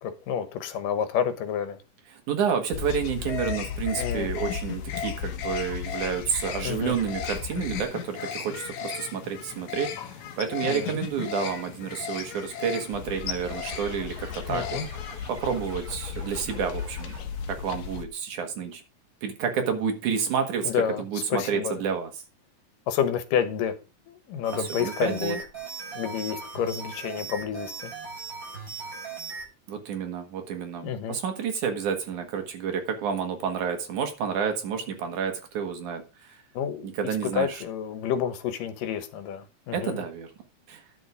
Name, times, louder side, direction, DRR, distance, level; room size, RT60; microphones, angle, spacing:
voice 1, 0.0-1.8 4.0-4.3 6.6-6.9 10.6-11.0 14.5-14.8 20.6-21.0 21.3-21.8 22.9-23.8 24.1-25.4 26.0-27.9 30.8-31.2 36.5-36.9 37.4-40.0, left 8 dB, 85° left, 2.8 m, -29 dB
voice 2, 2.1-14.8 15.3-17.1 17.5-18.8 19.2-22.1 24.5-25.4 29.7-36.4 36.8-37.6 39.7-40.3 40.7-40.8, right 7 dB, 70° right, 3.0 m, -30 dB
sound 1, 2.7-18.0, left 8 dB, 65° left, 2.3 m, -35 dB
sound 2, 13.4-17.6, right 1 dB, 10° right, 4.3 m, -47 dB
sound 3, 24.4-29.5, right 5 dB, 35° right, 6.8 m, -38 dB
10.5 x 7.0 x 5.0 m
omnidirectional pair, 3.8 m